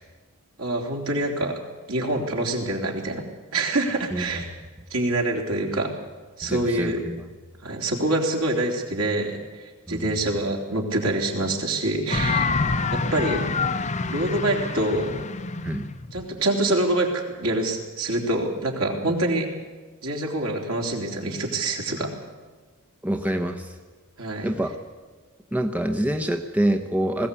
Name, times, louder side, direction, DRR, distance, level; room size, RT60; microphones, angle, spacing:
voice 1, 0.6-1.6 1.9-3.2 3.5-4.5 4.9-5.9 6.4-7.0 7.6-9.4 9.9-12.5 12.9-13.5 14.1-15.2 16.1-19.5 20.0-22.1 24.2-24.5, right 1 dB, 70° right, 0 dB, 3.6 m, -25 dB
voice 2, 6.4-7.3 9.9-10.2 15.6-15.9 23.0-23.8 24.4-24.8 25.5-27.3, right 1 dB, 5° right, 4 dB, 0.9 m, -26 dB
sound 1, 12.1-17.0, left 4 dB, 35° left, 0.8 m, -27 dB
20.5 x 16.0 x 8.4 m, 1.4 s
head